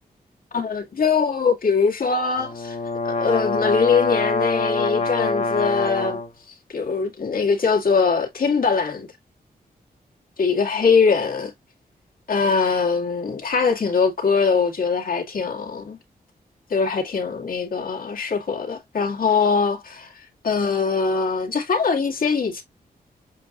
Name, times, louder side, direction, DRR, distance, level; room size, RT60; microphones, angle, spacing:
voice 1, 0.5-2.8 3.0-6.2 6.7-9.1 10.4-11.5 12.3-16.0 16.7-20.1 20.4-22.6, left 5 dB, 65° left, 2.0 m, -22 dB
sound 1, 2.4-6.3, left 3 dB, 45° left, 1.9 m, -24 dB
7.5 x 2.6 x 2.4 m
cardioid pair, 85°, 16 cm